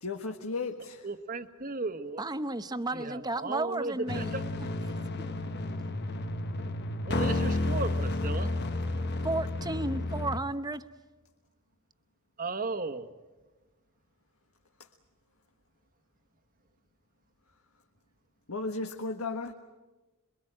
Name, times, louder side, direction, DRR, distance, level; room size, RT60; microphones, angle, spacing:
voice 1, 0.0-1.1 18.5-19.5, left 3 dB, 75° left, 1.6 m, -34 dB
voice 2, 0.8-2.2 2.9-4.5 7.1-8.5 12.4-13.1, right 3 dB, 40° right, 1.4 m, -35 dB
voice 3, 2.2-4.3 4.9-5.1 9.2-10.8, right 2 dB, 20° right, 0.9 m, -33 dB
sound 1, 4.1-10.4, left 2 dB, 50° left, 1.2 m, -31 dB
27.0 x 23.0 x 8.9 m
head